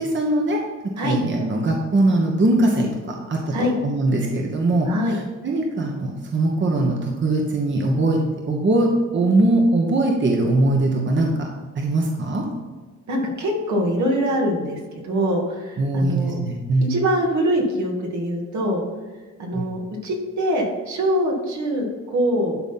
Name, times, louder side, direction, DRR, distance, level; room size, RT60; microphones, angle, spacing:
voice 1, 0.0-11.5 11.8-12.5 15.8-16.9 19.5-19.6, right 2 dB, 40° right, 0 dB, 1.4 m, -21 dB
voice 2, 4.9-5.2 13.1-16.4 16.9-18.8 19.4-22.6, equal, 70° right, -1 dB, 2.3 m, -23 dB
11.5 x 4.1 x 5.9 m, 1.3 s
cardioid pair, 90°, 30 cm